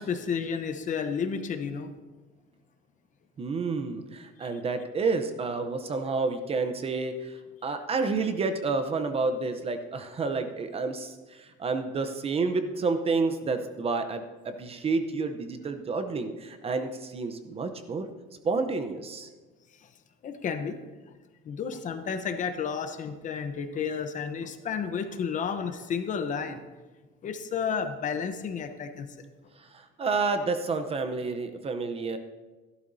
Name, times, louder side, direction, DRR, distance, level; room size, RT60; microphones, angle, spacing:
voice 1, 0.0-1.9 4.4-4.5 19.8-19.9 20.2-20.8 21.4-26.6 27.2-29.3, left 6 dB, 40° left, 8 dB, 0.8 m, -32 dB
voice 2, 3.4-18.1 18.4-19.3 29.6-32.2, right 4 dB, 30° right, 8 dB, 0.7 m, -30 dB
14.5 x 12.0 x 2.7 m, 1.2 s
cardioid pair, 145°, 20 cm